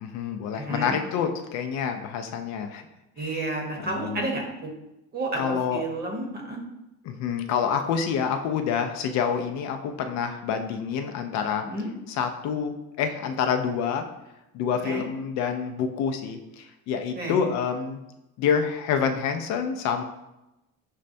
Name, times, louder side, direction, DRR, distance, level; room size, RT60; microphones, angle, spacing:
voice 1, 0.0-2.8 3.2-3.4 3.8-4.3 5.4-5.8 7.1-11.7 12.1-14.1 14.5-18.0 18.4-20.0, left 7 dB, 60° left, 6 dB, 0.4 m, -27 dB
voice 2, 0.5-1.0 3.2-4.7 5.1-6.6 11.6-11.9 14.8-15.0 17.2-17.4, right 2 dB, 30° right, 1 dB, 0.8 m, -31 dB
6.3 x 2.2 x 2.5 m, 0.94 s
cardioid pair, 135°, 32 cm